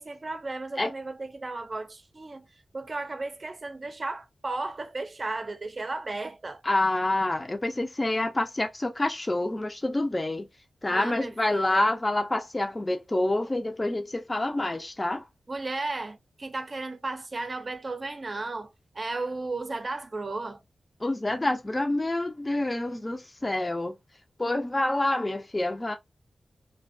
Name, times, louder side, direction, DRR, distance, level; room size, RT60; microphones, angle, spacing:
voice 1, 0.0-6.6 10.9-11.9 15.5-20.6, right 3 dB, 45° right, 0.5 m, -35 dB
voice 2, 6.6-10.5 10.8-15.3 21.0-24.0 24.4-26.0, left 2 dB, 30° left, 0.5 m, -27 dB
2.5 x 2.1 x 2.4 m
cardioid pair, 45°, 0 cm